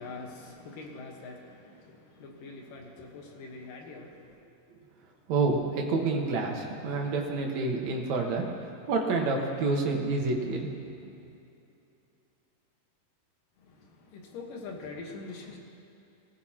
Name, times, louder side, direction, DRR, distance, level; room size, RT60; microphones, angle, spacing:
voice 1, 0.0-4.3 13.7-15.6, left 3 dB, 80° left, 1 dB, 3.1 m, -44 dB
voice 2, 5.3-8.5 8.9-10.7, right 3 dB, 65° right, 1 dB, 2.6 m, -28 dB
22.5 x 15.0 x 3.0 m, 2.7 s
omnidirectional pair, 3.8 m